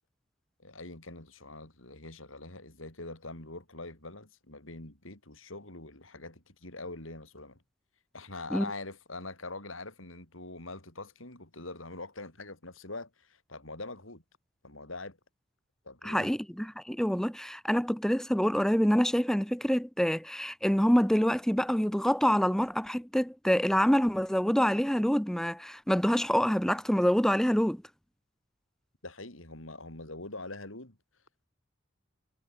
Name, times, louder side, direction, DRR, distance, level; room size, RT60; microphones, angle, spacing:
voice 1, 0.6-7.6 8.1-14.2 14.6-15.2 15.8-16.3 29.0-31.0, left 2 dB, 85° left, 6.6 m, -43 dB
voice 2, 16.0-27.8, equal, 5° left, 0.7 m, -26 dB
head